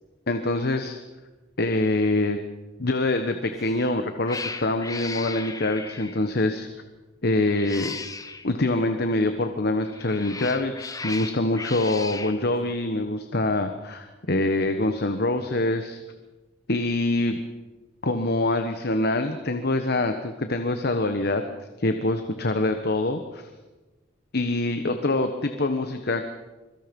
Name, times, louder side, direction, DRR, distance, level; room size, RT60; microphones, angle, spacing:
voice 1, 0.3-1.0 1.6-2.4 2.8-6.7 7.2-8.0 8.4-16.0 16.7-17.4 18.0-21.4 21.8-23.5 24.3-26.3, left 2 dB, 60° left, 7 dB, 1.3 m, -25 dB
Cat, 3.5-3.8 4.2-6.3 7.4-8.5 9.8-12.4, left 4 dB, 20° left, 1.1 m, -36 dB
25.5 x 23.0 x 5.4 m, 1.2 s
head